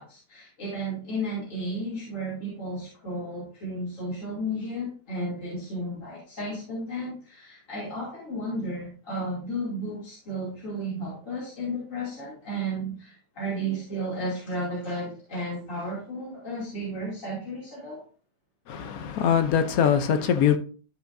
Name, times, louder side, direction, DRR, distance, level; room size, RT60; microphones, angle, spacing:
voice 1, 0.0-18.0, right 1 dB, 50° left, 3.1 m, -33 dB
voice 2, 18.7-20.6, left 8 dB, 65° left, 1.1 m, -22 dB
12.5 x 4.9 x 2.6 m
omnidirectional pair, 1.8 m